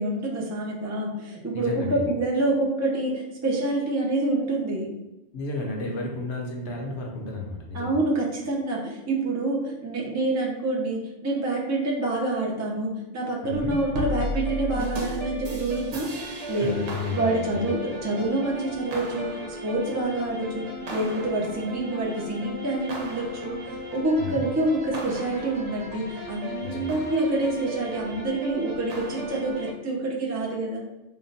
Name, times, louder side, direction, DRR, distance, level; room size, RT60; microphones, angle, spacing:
voice 1, 0.0-4.9 7.7-16.1 16.5-16.8 17.1-30.8, right 2 dB, 20° right, -2 dB, 0.4 m, -27 dB
voice 2, 1.5-2.0 5.3-8.0 13.4-13.7 16.5-17.7 24.2-24.4 26.6-27.0, left 2 dB, 70° left, 0 dB, 1.1 m, -32 dB
sound 1, 13.5-29.7, equal, 80° right, 0.9 m, -35 dB
3.5 x 2.1 x 3.9 m, 0.98 s
omnidirectional pair, 1.2 m